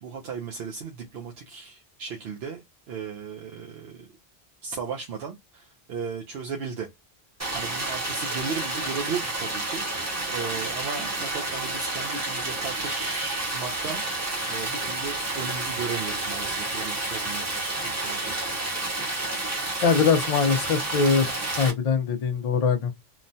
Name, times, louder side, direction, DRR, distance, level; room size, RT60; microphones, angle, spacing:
voice 1, 0.0-4.1 4.6-6.9 7.5-18.4, right 5 dB, 75° right, 0.8 m, -36 dB
Stream, 7.4-21.7, right 2 dB, 20° right, 0.7 m, -30 dB
voice 2, 19.8-21.3 21.6-23.0, left 5 dB, 50° left, 0.5 m, -22 dB
3.0 x 2.1 x 2.6 m
omnidirectional pair, 1.1 m